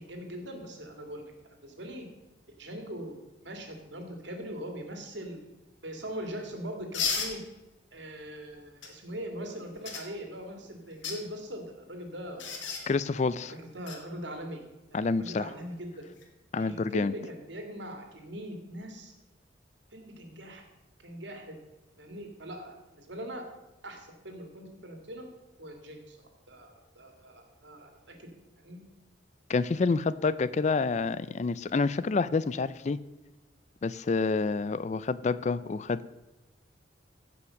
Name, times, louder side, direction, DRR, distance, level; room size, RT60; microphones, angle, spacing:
voice 1, 0.0-1.3 1.6-2.1 2.6-3.1 3.4-5.4 5.8-7.4 7.9-12.9 13.4-14.6 14.9-15.9 16.6-19.1 19.9-20.6 21.0-21.6 22.0-23.5 23.8-25.3 25.6-26.2 26.5-28.8, equal, 70° right, 4 dB, 2.3 m, -41 dB
sound 1, 6.9-7.3 8.8-8.9 9.8-10.0 10.9-11.2 12.4-12.8 13.9-14.0 16.0-16.2, left 6 dB, 80° left, 2.2 m, -32 dB
voice 2, 12.9-13.5 14.9-15.5 16.5-17.1 29.5-33.0 33.8-36.1, left 4 dB, 35° left, 17 dB, 0.4 m, -28 dB
15.5 x 5.8 x 6.4 m, 1.0 s
head